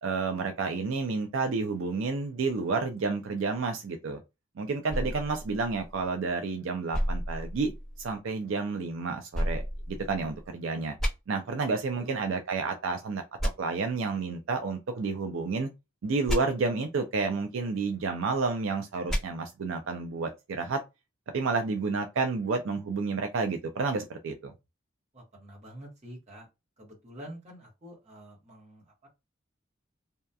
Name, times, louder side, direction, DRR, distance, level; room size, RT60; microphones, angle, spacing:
voice 1, 0.0-4.2 4.6-7.7 8.0-10.9 11.3-13.2 13.6-15.7 16.0-20.8 21.3-24.5, right 4 dB, 75° right, 0.4 m, -30 dB
sound 1, 4.9-6.3 6.9-8.2 9.3-10.5 11.0-11.1 13.4-13.5 16.3-16.4 19.1-19.2, equal, ahead, 1.1 m, -31 dB
voice 2, 12.0-12.3 25.1-26.5 26.8-29.1, equal, 35° right, 1.1 m, -47 dB
2.7 x 2.3 x 2.2 m
head